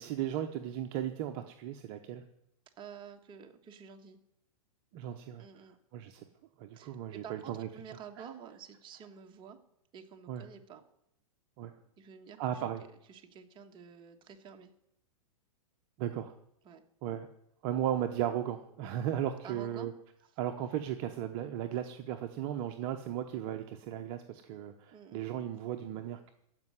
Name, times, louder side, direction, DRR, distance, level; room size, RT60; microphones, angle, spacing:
voice 1, 0.0-2.2 4.9-5.5 5.9-6.2 6.6-7.7 8.2-8.3 10.3-10.4 11.6-11.7 12.4-12.8 16.0-16.3 17.0-17.3 17.6-19.9 20.4-26.3, right 10 dB, 40° right, 6 dB, 0.9 m, -36 dB
voice 2, 2.8-4.2 5.4-5.8 6.8-9.6 9.9-10.8 12.0-12.6 13.1-14.7 16.6-16.8 19.4-19.9 24.9-25.3, right 7 dB, 25° right, 5 dB, 1.5 m, -50 dB
15.0 x 5.5 x 9.8 m, 0.77 s
hypercardioid pair, 140°, 19 cm